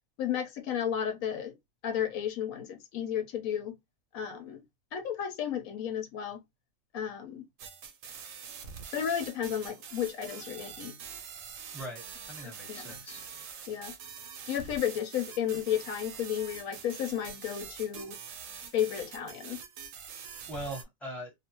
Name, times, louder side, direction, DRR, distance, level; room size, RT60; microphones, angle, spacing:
voice 1, 0.2-1.5 1.8-3.7 4.1-4.6 4.9-6.4 6.9-7.4 8.9-10.9 12.4-12.9 13.7-13.9 14.5-18.2 18.7-19.6, left 9 dB, 75° left, 1.0 m, -33 dB
sound 1, 7.6-20.8, right 7 dB, 70° right, 0.9 m, -45 dB
voice 2, 12.3-13.2 20.5-21.3, right 1 dB, ahead, 0.9 m, -40 dB
2.5 x 2.2 x 2.7 m
omnidirectional pair, 1.5 m